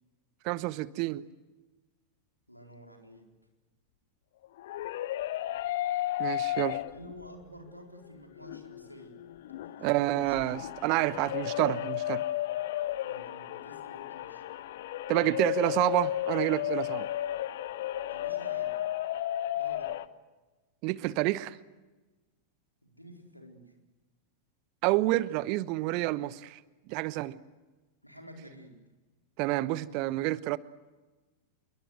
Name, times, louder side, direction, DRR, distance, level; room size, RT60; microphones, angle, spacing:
voice 1, 0.4-1.2 6.2-6.8 9.8-12.2 15.1-17.1 20.8-21.6 24.8-26.6 26.9-27.4 29.4-30.6, right 18 dB, 45° right, 19 dB, 0.9 m, -28 dB
voice 2, 2.5-3.3 6.9-9.2 9.6-11.3 13.0-14.4 18.1-18.9 19.5-20.0 22.8-23.7 28.0-28.8, equal, 90° left, 3 dB, 4.2 m, -50 dB
sound 1, 4.4-7.3 7.7-7.8 8.4-20.1, left 13 dB, 55° left, 1.0 m, -34 dB
27.5 x 23.0 x 8.1 m, 1.2 s
figure-of-eight pair, 90°, 0 cm